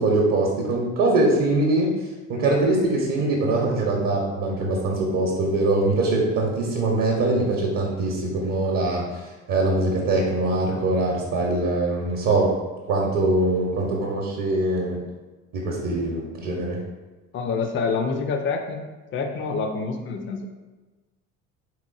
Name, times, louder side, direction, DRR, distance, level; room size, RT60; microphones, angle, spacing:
voice 1, 0.0-1.9 2.3-9.2 9.5-12.5 12.9-15.0 15.5-16.8, right 2 dB, 45° right, -2 dB, 0.7 m, -22 dB
voice 2, 17.3-18.8 19.1-20.5, left 4 dB, 30° left, 5 dB, 0.4 m, -26 dB
3.6 x 3.0 x 2.4 m, 1.2 s
figure-of-eight pair, 60°, 42 cm